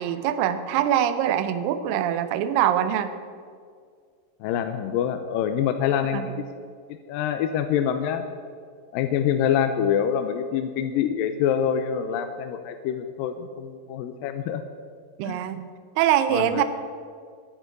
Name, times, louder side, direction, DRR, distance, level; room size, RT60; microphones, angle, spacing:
voice 1, 0.0-3.1 6.1-6.3 15.2-15.7 16.0-16.6, right 10 dB, 80° right, 11 dB, 2.3 m, -23 dB
voice 2, 4.4-6.4 7.1-8.3 8.9-14.6 15.2-15.4 16.3-16.6, left 9 dB, 80° left, 7 dB, 2.3 m, -25 dB
9.9 x 8.5 x 9.2 m, 2.1 s
omnidirectional pair, 4.1 m